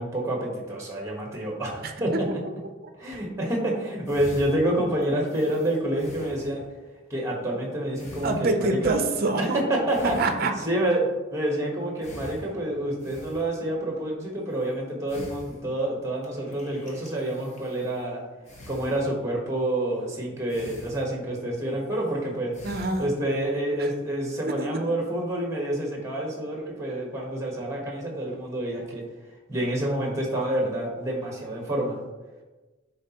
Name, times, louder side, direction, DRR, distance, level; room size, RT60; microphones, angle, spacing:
voice 1, 0.0-2.1 3.0-6.6 7.1-9.0 9.4-18.2 18.7-22.5 23.0-29.0 29.5-32.0, right 1 dB, 15° right, -1 dB, 1.2 m, -28 dB
sound 1, 3.8-3.9 4.0-6.9 7.9-8.9 9.9-10.8 12.0-13.7 14.5-14.7 15.1-16.0 16.2-18.1 18.4-19.4 19.9-20.1 20.5-21.4 21.7-22.1 22.5-23.3, left 1 dB, 35° left, 1.1 m, -45 dB
voice 2, 8.2-9.6 10.0-10.5 22.6-23.1 23.8-23.9 24.4-24.9, right 2 dB, 45° right, 6 dB, 0.6 m, -26 dB
9.6 x 4.0 x 2.9 m, 1.2 s
head